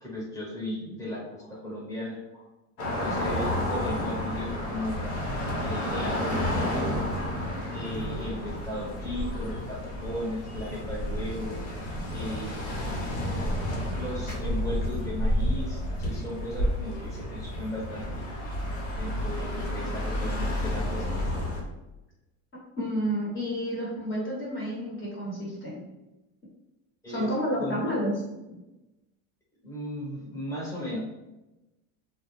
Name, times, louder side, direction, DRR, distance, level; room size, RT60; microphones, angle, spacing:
voice 1, 0.0-1.2 1.5-2.2 3.0-5.1 5.6-6.9 7.7-11.6 12.1-12.8 13.9-18.2 19.0-21.1 27.0-27.3 27.6-27.8 29.6-31.0, left 1 dB, 5° left, -6 dB, 1.1 m, -36 dB
sound 1, 2.8-21.6, left 1 dB, 70° left, 1.0 m, -31 dB
voice 2, 22.8-25.9 27.1-28.4, equal, 30° left, -5 dB, 1.1 m, -30 dB
2.2 x 2.1 x 3.2 m, 1.0 s
supercardioid pair, 100°, 42 cm